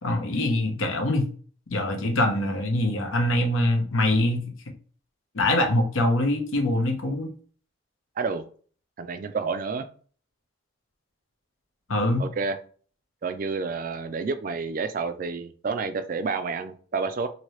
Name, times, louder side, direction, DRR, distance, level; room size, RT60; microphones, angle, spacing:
voice 1, 0.0-1.2 1.7-4.4 5.3-7.3 11.9-12.2, left 1 dB, 80° left, 3 dB, 0.8 m, -23 dB
voice 2, 9.0-9.9 12.2-12.6 13.2-17.3, right 4 dB, 45° right, 10 dB, 0.3 m, -29 dB
2.9 x 2.7 x 3.1 m, 0.43 s
head